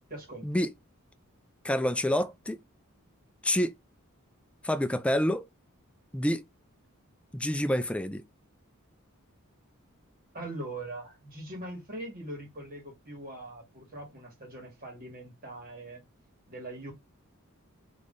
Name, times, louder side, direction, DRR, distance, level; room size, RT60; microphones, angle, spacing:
voice 1, 0.1-0.5 10.3-16.0 16.5-16.9, right 1 dB, 40° right, 2.1 m, -41 dB
voice 2, 1.6-2.6 3.4-3.7 4.6-5.4 6.1-6.4 7.3-8.2, left 1 dB, 5° left, 0.3 m, -27 dB
3.5 x 3.2 x 3.9 m
head